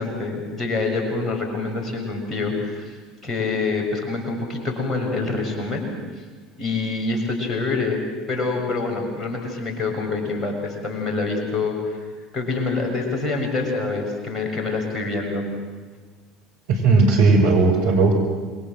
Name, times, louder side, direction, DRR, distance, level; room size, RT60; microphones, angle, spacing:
voice 1, 0.0-3.0 3.2-5.9 6.6-8.0 8.3-12.1 12.3-15.5, left 3 dB, 25° left, 2 dB, 7.2 m, -26 dB
voice 2, 16.7-18.1, right 3 dB, 65° right, 0 dB, 5.8 m, -16 dB
27.0 x 22.5 x 7.7 m, 1.4 s
figure-of-eight pair, 65°, 0 cm